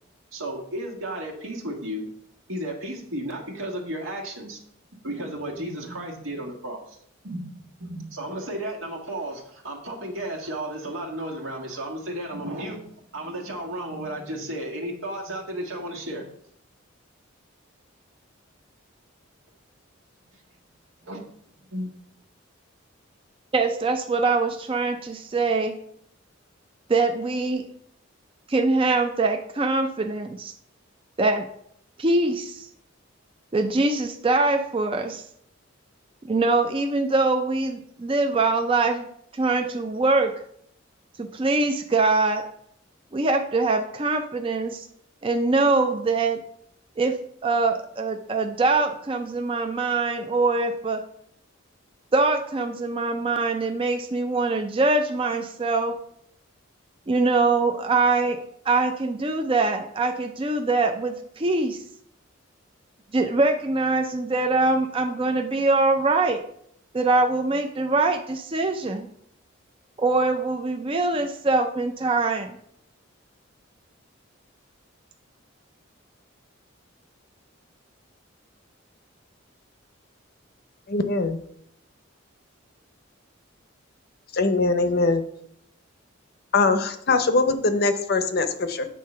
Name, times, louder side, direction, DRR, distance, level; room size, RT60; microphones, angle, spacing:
voice 1, 0.3-2.1 2.5-4.6 5.0-7.0 7.2-16.3 20.3-20.4 21.0-21.2 21.7-22.1, right 1 dB, 80° right, 0 dB, 1.6 m, -33 dB
voice 2, 23.5-25.7 26.9-27.6 28.5-30.5 31.2-31.5 32.0-32.7 33.5-35.2 36.3-39.1 39.3-40.3 41.2-42.4 43.1-44.9 45.2-46.4 47.0-47.2 47.4-51.0 52.1-55.9 57.1-58.4 58.7-61.8 63.1-66.4 66.9-69.1 70.0-72.6, right 3 dB, 25° right, 5 dB, 0.4 m, -23 dB
voice 3, 80.9-81.4 84.3-85.2 86.5-88.9, left 3 dB, 50° left, 9 dB, 0.7 m, -22 dB
8.5 x 3.7 x 5.5 m, 0.69 s
head